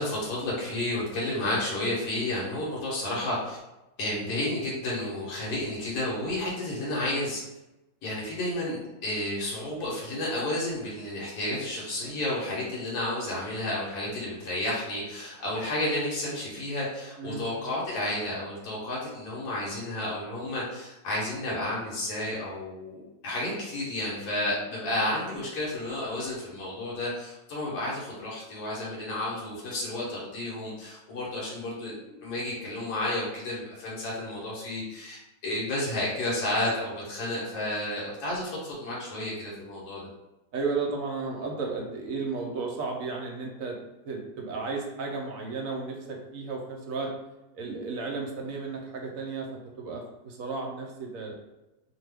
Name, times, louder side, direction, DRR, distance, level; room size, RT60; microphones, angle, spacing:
voice 1, 0.0-3.6 4.0-7.4 8.0-40.1, left 1 dB, 75° left, -5 dB, 1.3 m, -31 dB
voice 2, 17.2-17.5 40.5-43.8 44.0-47.1 47.5-51.3, right 4 dB, 65° right, 0 dB, 0.9 m, -33 dB
2.8 x 2.2 x 3.3 m, 0.99 s
omnidirectional pair, 1.7 m